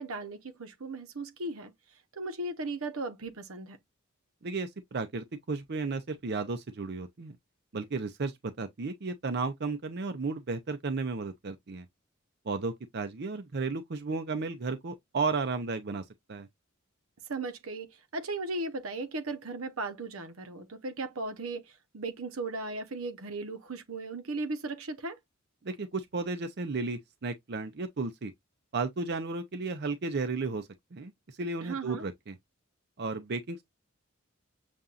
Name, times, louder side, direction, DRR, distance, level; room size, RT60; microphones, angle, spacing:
voice 1, 0.0-1.7 2.1-3.8 17.3-25.2 31.6-32.0, right 2 dB, 85° right, 0.9 m, -37 dB
voice 2, 4.4-7.4 7.7-11.8 12.5-16.0 16.3-16.5 25.6-28.3 28.7-31.1 31.4-32.4 33.0-33.6, right 4 dB, 50° right, 0.6 m, -34 dB
6.8 x 2.5 x 2.4 m
head